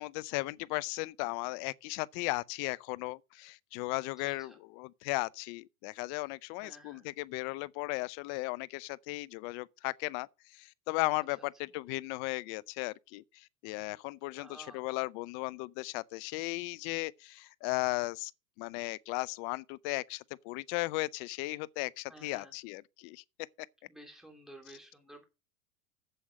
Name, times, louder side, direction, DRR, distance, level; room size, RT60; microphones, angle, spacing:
voice 1, 0.0-10.3 10.5-18.3 18.6-23.2, left 23 dB, 45° left, 0.6 m, -36 dB
voice 2, 4.2-4.6 6.6-7.1 11.4-11.5 14.3-14.9 22.1-22.5 23.9-25.2, right 1 dB, ahead, 2.9 m, -53 dB
7.8 x 7.8 x 6.2 m
hypercardioid pair, 115°, 43 cm